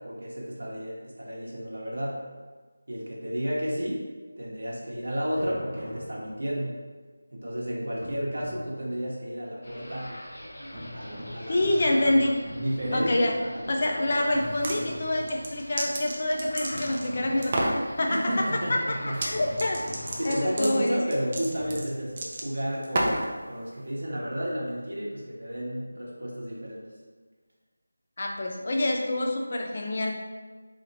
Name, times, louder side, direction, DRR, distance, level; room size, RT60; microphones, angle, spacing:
voice 1, 0.0-2.2 2.9-4.0 4.4-6.8 7.3-10.1 10.9-11.7 12.6-14.2 18.1-19.4 20.2-26.9, equal, 70° right, -5 dB, 0.8 m, -32 dB
sound 1, 5.4-6.7 8.0-9.3 10.7-13.8 14.3-15.8 16.7-18.1 19.4-20.7 21.6-21.8, equal, 5° left, 1.0 m, -42 dB
sound 2, 9.6-20.8, equal, 70° left, 1.2 m, -44 dB
voice 2, 11.5-12.3 12.9-13.3 13.7-17.7 18.0-19.0 19.2-19.8 20.2-21.0 28.2-30.1, left 1 dB, 40° left, 1 dB, 0.5 m, -26 dB
sound 3, 14.4-14.8 15.2-17.1 17.4-17.8 19.1-19.3 19.6-23.3, right 1 dB, 30° right, 0.4 m, -30 dB
4.0 x 2.9 x 2.7 m, 1.4 s
figure-of-eight pair, 170°, 0 cm